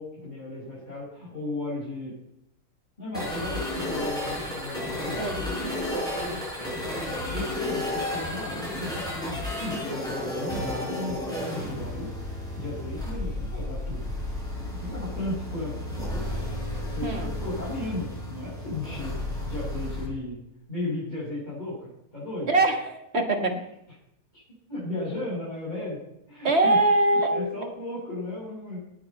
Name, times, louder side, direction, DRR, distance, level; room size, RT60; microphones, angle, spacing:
voice 1, 0.0-2.1 3.0-5.2 6.6-12.1 12.6-14.1 14.6-16.3 16.7-20.4 20.7-22.5 24.7-26.0 26.3-26.8 27.1-28.8, left 2 dB, 30° left, -10 dB, 6.6 m, -35 dB
sound 1, 3.1-20.1, left 1 dB, ahead, 5.6 m, -32 dB
voice 2, 4.8-6.4 17.0-17.3 22.5-23.6 26.4-27.5, right 2 dB, 45° right, 5 dB, 1.9 m, -24 dB
18.0 x 8.5 x 5.5 m, 0.82 s
omnidirectional pair, 1.6 m